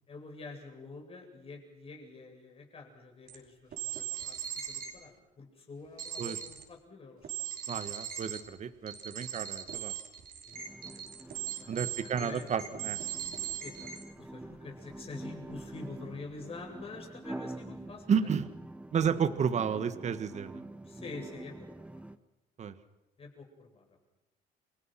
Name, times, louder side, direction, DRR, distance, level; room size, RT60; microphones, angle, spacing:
voice 1, 0.1-7.3 10.4-11.0 11.6-12.5 13.6-18.3 20.8-22.0 23.2-24.0, left 3 dB, 35° left, 2 dB, 8.0 m, -47 dB
sound 1, 3.3-3.4 3.7-5.0 6.0-6.6 7.2-8.4 8.9-14.0, right 10 dB, 60° right, 5.4 m, -39 dB
voice 2, 7.7-9.9 11.7-13.0 18.1-18.5 18.9-20.6 22.6-22.7, right 7 dB, 45° right, 11 dB, 1.8 m, -31 dB
sound 2, 10.5-22.2, right 1 dB, 5° right, 1.2 m, -46 dB
29.5 x 26.0 x 6.1 m, 0.98 s
cardioid pair, 110°, 17 cm